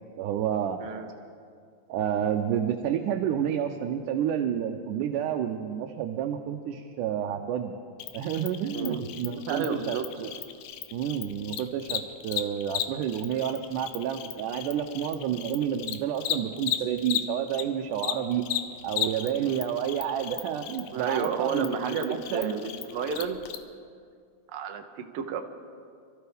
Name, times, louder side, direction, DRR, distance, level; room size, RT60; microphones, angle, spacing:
voice 1, 0.2-0.9 1.9-7.7 8.1-10.3 10.9-18.4 18.8-22.5, right 9 dB, 85° right, 3 dB, 2.2 m, -30 dB
Cricket, 8.0-17.6 17.9-23.6, left 12 dB, 80° left, 2.1 m, -35 dB
voice 2, 9.3-10.0 20.9-23.4 24.5-25.4, right 6 dB, 65° right, 5 dB, 1.4 m, -31 dB
26.0 x 14.0 x 3.5 m, 2.2 s
omnidirectional pair, 3.6 m